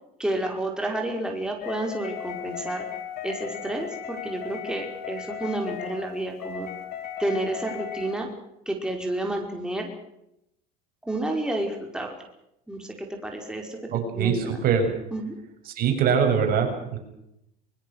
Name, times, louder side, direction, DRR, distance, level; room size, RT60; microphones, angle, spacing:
voice 1, 0.2-2.9 3.2-6.7 7.2-8.3 8.7-9.9 11.0-12.2 12.7-13.8 14.2-14.5 15.1-15.4, right 1 dB, 5° right, 1 dB, 5.1 m, -30 dB
sound 1, 1.6-8.2, left 9 dB, 55° left, 3.8 m, -36 dB
voice 2, 13.9-14.9 15.7-17.0, right 7 dB, 50° right, 4 dB, 7.0 m, -23 dB
23.5 x 22.0 x 6.6 m, 0.82 s
supercardioid pair, 100°, 19 cm